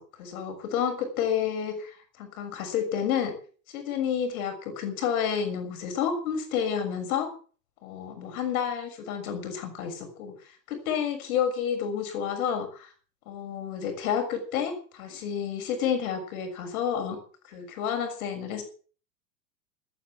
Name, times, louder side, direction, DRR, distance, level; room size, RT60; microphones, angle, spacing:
voice 1, 0.0-3.3 3.7-7.3 7.8-10.3 10.7-12.9 13.3-17.2 17.5-18.6, left 8 dB, 60° left, 7 dB, 6.5 m, -30 dB
13.5 x 13.5 x 7.3 m, 0.41 s
figure-of-eight pair, 90°, 48 cm